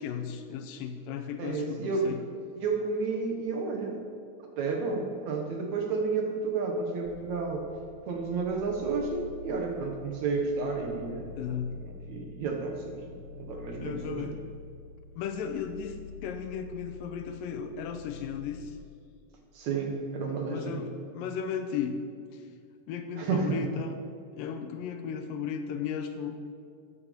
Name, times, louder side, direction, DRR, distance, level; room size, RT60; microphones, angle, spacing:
voice 1, 0.0-2.2 11.4-11.8 13.8-14.4 15.2-16.0 16.2-18.7 20.5-22.0 22.9-24.0 24.3-26.4, left 7 dB, 80° left, 7 dB, 2.3 m, -35 dB
voice 2, 1.4-2.2 2.6-4.0 4.6-7.7 8.1-11.4 11.7-14.4 19.5-20.8 23.2-23.7, right 4 dB, 65° right, 2 dB, 2.2 m, -31 dB
sound 1, 7.0-18.7, left 6 dB, 50° left, 1.6 m, -47 dB
13.5 x 8.9 x 5.1 m, 2.3 s
omnidirectional pair, 4.1 m